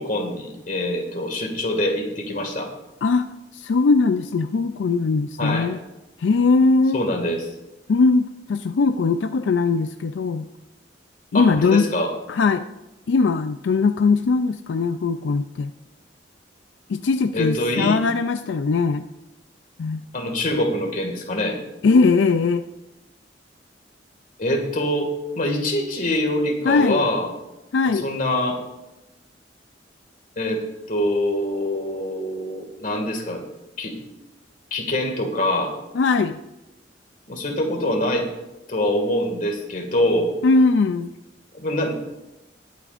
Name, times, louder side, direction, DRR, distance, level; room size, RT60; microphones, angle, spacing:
voice 1, 0.0-2.7 5.4-5.7 6.9-7.5 11.3-12.1 17.3-18.0 20.1-21.6 24.4-27.3 27.9-28.6 30.4-33.5 33.8-34.0 34.7-35.7 37.3-38.3 38.7-40.3 41.5-42.0, left 1 dB, 50° left, 3 dB, 2.0 m, -24 dB
voice 2, 3.5-5.8 6.2-7.0 7.9-10.5 11.3-11.9 12.3-12.6 13.1-15.7 16.9-19.0 19.8-20.0 21.8-22.7 26.6-27.0 27.7-28.1 35.9-36.4 40.4-41.1, left 4 dB, 90° left, 9 dB, 0.4 m, -20 dB
20.5 x 8.4 x 2.5 m, 0.98 s
head